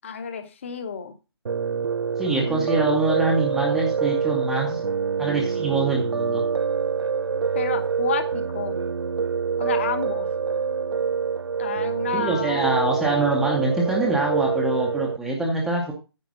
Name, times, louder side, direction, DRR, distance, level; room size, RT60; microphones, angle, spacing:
voice 1, 0.0-1.1 2.4-2.7 7.5-8.8 9.6-10.3 11.6-12.8, left 6 dB, 30° left, 9 dB, 1.0 m, -31 dB
Piano, 1.5-15.2, right 6 dB, 75° right, 0.5 m, -26 dB
voice 2, 2.2-4.8 5.2-6.4 12.1-15.9, right 2 dB, ahead, -3 dB, 0.7 m, -24 dB
9.3 x 5.0 x 6.1 m, 0.30 s
figure-of-eight pair, 165°, 14 cm